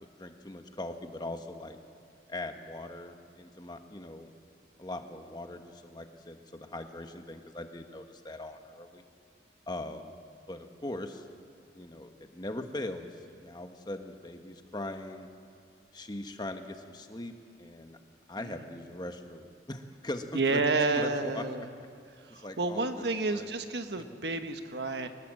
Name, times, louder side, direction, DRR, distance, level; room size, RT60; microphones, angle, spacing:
voice 1, 0.2-1.8 2.3-4.3 4.8-9.0 9.7-10.1 10.5-11.2 11.7-13.1 13.4-15.3 15.9-17.3 17.6-18.0 18.3-20.6 20.9-21.4 22.3-23.5, left 1 dB, 25° left, 6 dB, 1.2 m, -40 dB
voice 2, 20.3-21.7 22.2-25.1, right 3 dB, 70° right, 7 dB, 1.3 m, -30 dB
23.5 x 19.5 x 7.7 m, 2.2 s
head